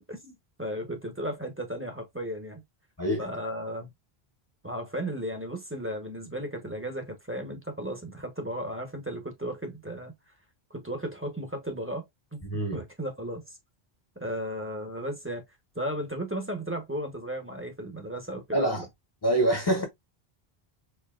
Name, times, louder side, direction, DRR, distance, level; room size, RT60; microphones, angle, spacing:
voice 1, 0.0-2.6 3.2-3.9 4.6-10.1 10.7-12.1 12.3-12.4 12.7-13.6 14.2-15.4 15.7-18.8, equal, 15° right, 0.8 m, -35 dB
voice 2, 12.4-12.8 18.5-18.9 19.2-19.8, right 1 dB, 25° left, 0.9 m, -25 dB
4.6 x 2.8 x 2.3 m
omnidirectional pair, 1.0 m